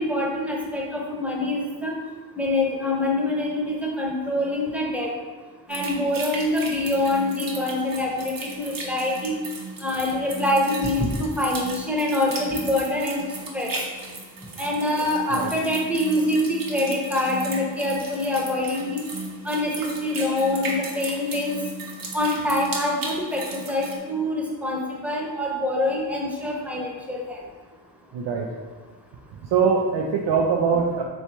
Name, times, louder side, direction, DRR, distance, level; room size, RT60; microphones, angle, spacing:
voice 1, 0.0-1.9 2.4-5.1 5.7-9.3 9.8-13.2 13.5-13.7 14.6-19.0 19.4-21.5 22.1-27.4, left 1 dB, 5° right, -2 dB, 0.9 m, -25 dB
sound 1, 5.7-24.0, right 2 dB, 50° right, 0.9 m, -36 dB
voice 2, 28.1-28.5 29.4-31.0, right 5 dB, 70° right, -1 dB, 0.5 m, -22 dB
3.3 x 3.1 x 2.9 m, 1.4 s
supercardioid pair, 50°, 44 cm